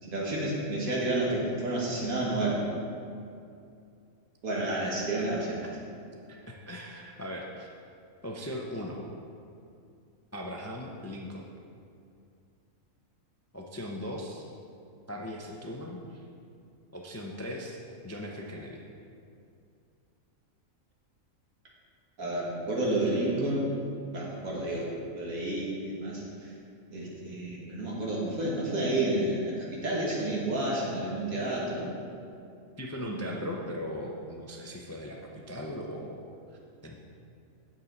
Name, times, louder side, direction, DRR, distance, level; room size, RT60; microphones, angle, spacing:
voice 1, 0.0-2.6 4.4-5.7 22.2-23.7 24.1-26.5 26.9-31.9 33.0-33.5, right 1 dB, 85° right, -4 dB, 2.1 m, -30 dB
voice 2, 6.3-7.7 8.2-9.0 10.3-11.5 13.5-14.5 15.1-16.2 16.9-17.8 18.0-18.8 32.8-36.2 36.8-37.0, equal, 25° left, -1 dB, 0.3 m, -38 dB
8.5 x 7.2 x 4.0 m, 2.5 s
omnidirectional pair, 1.4 m